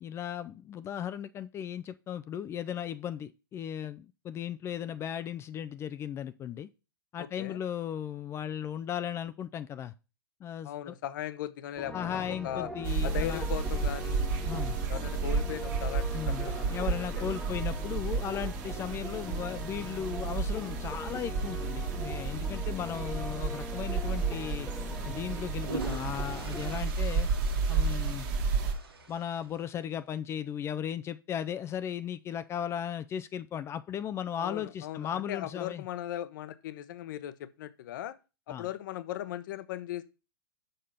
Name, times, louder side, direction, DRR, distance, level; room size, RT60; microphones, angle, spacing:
voice 1, 0.0-6.7 7.1-9.9 10.4-10.9 11.9-13.5 14.5-14.8 16.1-24.7 25.0-27.3 27.7-28.3 29.1-35.8 38.5-38.7, left 9 dB, 20° left, 0.4 m, -36 dB
voice 2, 7.2-7.6 10.6-12.7 13.0-14.2 14.9-16.9 17.1-17.4 34.4-38.1 38.5-40.0, left 12 dB, 55° left, 0.9 m, -38 dB
sound 1, 11.8-26.8, left 1 dB, 5° left, 1.0 m, -42 dB
sound 2, 12.8-28.7, right 4 dB, 50° right, 1.6 m, -32 dB
sound 3, 25.5-29.8, right 5 dB, 90° right, 1.6 m, -44 dB
6.7 x 5.0 x 5.7 m
hypercardioid pair, 120°, 12 cm